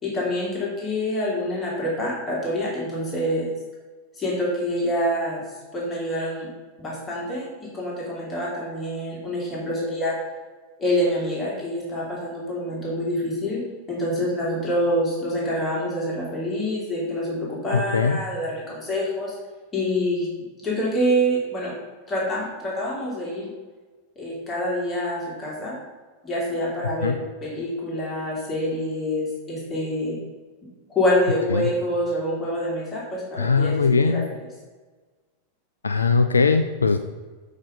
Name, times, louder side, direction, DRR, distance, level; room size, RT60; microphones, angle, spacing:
voice 1, 0.0-3.5 4.1-5.4 5.7-6.5 6.8-10.1 10.8-19.3 19.7-20.3 20.6-21.7 22.1-23.5 24.2-25.8 26.2-27.2 27.4-30.2 30.9-34.2, equal, 20° left, -5 dB, 2.5 m, -26 dB
voice 2, 17.7-18.2 27.0-27.2 31.5-31.7 33.4-34.3 35.8-37.0, left 4 dB, 75° left, 8 dB, 0.3 m, -20 dB
7.2 x 5.0 x 5.3 m, 1.3 s
figure-of-eight pair, 90°, 0 cm